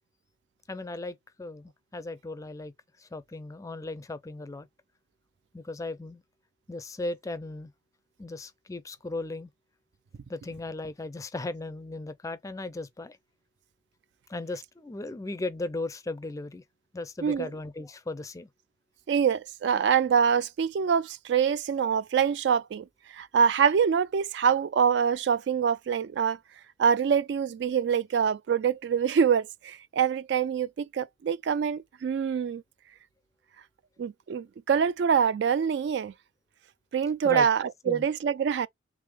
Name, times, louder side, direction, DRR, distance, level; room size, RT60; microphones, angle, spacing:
voice 1, 0.7-2.7 3.0-4.7 5.5-6.2 6.7-7.7 8.2-9.5 10.3-13.2 14.3-16.6 16.9-18.5 37.2-37.5 37.9-38.1, left 2 dB, 15° left, 0.4 m, -36 dB
voice 2, 19.1-22.9 23.1-26.4 26.8-32.6 34.0-36.1 36.9-38.7, right 7 dB, 65° right, 0.3 m, -25 dB
3.6 x 3.1 x 3.3 m
head